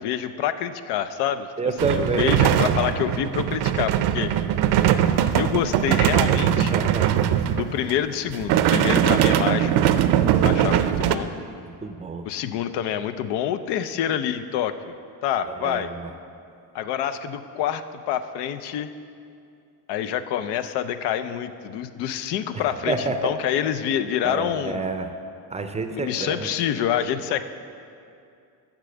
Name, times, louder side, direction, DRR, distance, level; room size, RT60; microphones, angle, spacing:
voice 1, 0.0-1.5 1.8-4.3 5.3-6.8 7.5-9.7 10.4-11.3 12.2-14.9 15.2-15.9 16.7-18.9 19.9-25.0 25.9-27.4, left 10 dB, 85° left, 11 dB, 0.6 m, -27 dB
voice 2, 1.6-2.3 2.6-2.7 6.7-7.3 11.7-12.2 15.6-15.8 22.9-23.3 24.2-25.1 25.5-26.5, right 3 dB, 15° right, 7 dB, 0.5 m, -28 dB
sound 1, 1.8-7.9 8.3-11.2, right 10 dB, 70° right, 0.6 m, -21 dB
8.3 x 6.1 x 7.7 m, 2.5 s
cardioid pair, 125°, 40 cm